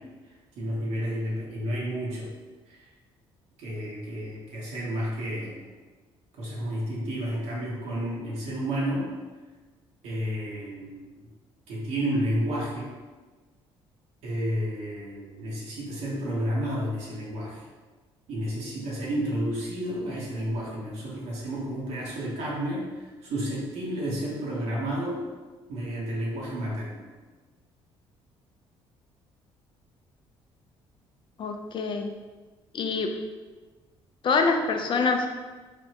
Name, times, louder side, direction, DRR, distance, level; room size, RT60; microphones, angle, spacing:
voice 1, 0.6-2.3 2.7-2.9 3.6-5.7 6.3-9.1 10.0-11.3 11.7-12.9 14.2-17.6 18.3-25.3 25.7-27.0, equal, 75° right, -5 dB, 0.9 m, -31 dB
voice 2, 31.4-32.1 32.7-33.1 34.2-35.3, left 4 dB, 45° left, 4 dB, 0.4 m, -25 dB
3.3 x 2.1 x 2.8 m, 1.3 s
supercardioid pair, 75°, 11 cm